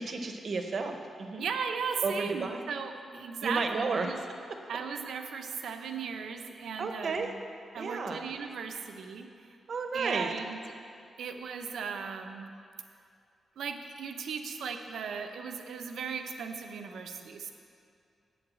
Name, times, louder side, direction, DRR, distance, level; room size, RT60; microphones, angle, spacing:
voice 1, 0.0-1.4 2.0-2.7 3.4-4.2 6.8-7.3 7.8-8.2 9.7-10.3, right 4 dB, 50° right, 5 dB, 0.8 m, -32 dB
voice 2, 1.4-4.2 4.7-7.3 7.7-9.3 9.9-10.6 11.2-12.5 13.6-17.5, right 6 dB, 90° right, 5 dB, 0.8 m, -37 dB
8.0 x 8.0 x 7.5 m, 2.4 s
wide cardioid pair, 160°, 0 cm